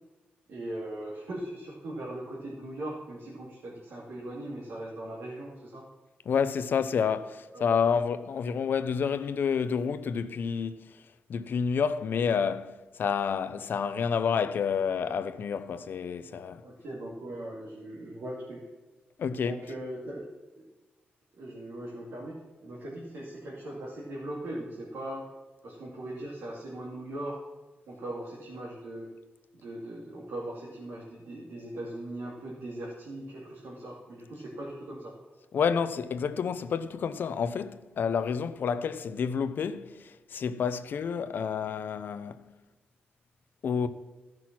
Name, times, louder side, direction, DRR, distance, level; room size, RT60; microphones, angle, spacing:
voice 1, 0.5-5.8 7.5-7.9 16.6-18.6 19.3-20.3 21.3-25.2 25.6-27.4 27.9-29.1 29.5-35.1, right 1 dB, 80° right, 2.5 m, -39 dB
voice 2, 6.3-10.9 11.3-16.6 19.2-19.6 35.5-42.4 43.6-43.9, left 6 dB, 65° left, 0.7 m, -29 dB
14.5 x 6.1 x 6.1 m
wide cardioid pair, 155°, 4 cm